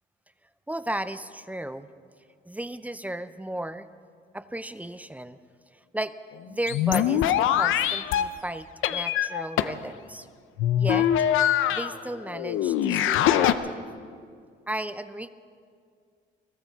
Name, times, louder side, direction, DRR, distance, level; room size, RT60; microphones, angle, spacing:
voice 1, 0.7-1.9 2.5-3.9 4.3-5.4 5.9-6.2 6.5-7.2 7.5-10.3 10.8-11.1 11.7-13.9 14.7-15.3, right 1 dB, 5° right, 13 dB, 0.5 m, -34 dB
sound 1, 6.3-6.4 6.7-8.3 8.8-9.8 10.6-12.0 12.3-13.5, left 10 dB, 85° left, 0.6 m, -23 dB
22.0 x 13.5 x 4.6 m, 2.2 s
cardioid pair, 90°, 20 cm